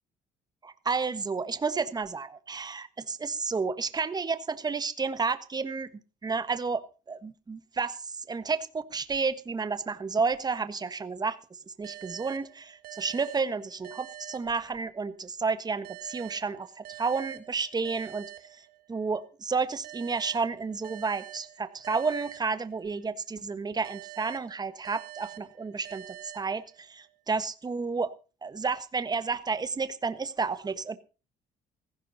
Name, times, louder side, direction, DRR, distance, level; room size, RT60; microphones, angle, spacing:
voice 1, 0.6-5.9 6.2-11.4 11.8-18.3 18.9-28.1 28.4-31.0, right 4 dB, 25° right, 12 dB, 1.4 m, -31 dB
sound 1, 11.8-15.2 15.8-19.2 19.8-23.2 23.8-27.2, right 15 dB, 60° right, 1.8 m, -47 dB
15.5 x 15.0 x 4.2 m, 0.34 s
cardioid pair, 110°, 17 cm